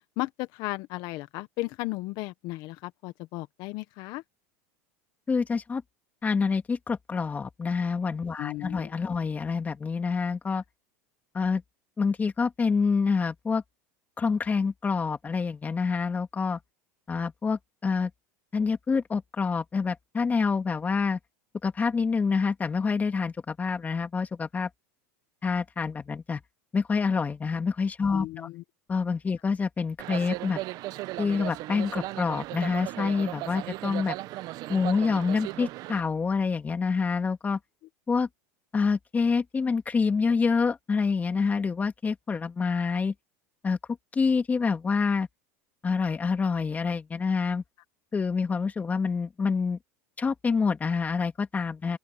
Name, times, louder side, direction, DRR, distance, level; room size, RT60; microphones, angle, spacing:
voice 1, 0.2-4.2 8.4-8.9 28.1-28.6, left 20 dB, 60° left, 1.1 m, -35 dB
voice 2, 5.3-5.8 6.2-10.6 11.3-11.6 12.0-13.6 14.2-16.6 17.1-18.1 18.5-21.2 21.6-24.7 25.4-26.4 26.7-28.5 28.9-30.6 31.2-34.2 34.7-37.6 38.1-38.3 38.7-43.1 43.6-43.8 44.1-45.3 45.8-47.6 48.1-49.8 50.2-52.0, left 5 dB, 20° left, 2.6 m, -27 dB
sound 1, 30.0-36.0, right 18 dB, 55° right, 1.0 m, -36 dB
open air
supercardioid pair, 115°, 8 cm